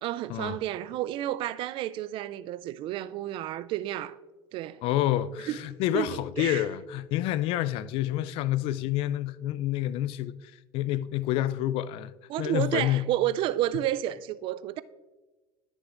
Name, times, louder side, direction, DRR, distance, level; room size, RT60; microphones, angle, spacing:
voice 1, 0.0-4.2 4.5-4.8 5.5-5.6 5.9-6.6 12.3-14.8, right 13 dB, 55° right, 0.3 m, -31 dB
voice 2, 4.8-12.1 12.4-13.1, left 13 dB, 60° left, 0.4 m, -28 dB
12.5 x 6.6 x 2.5 m
hypercardioid pair, 90°, 11 cm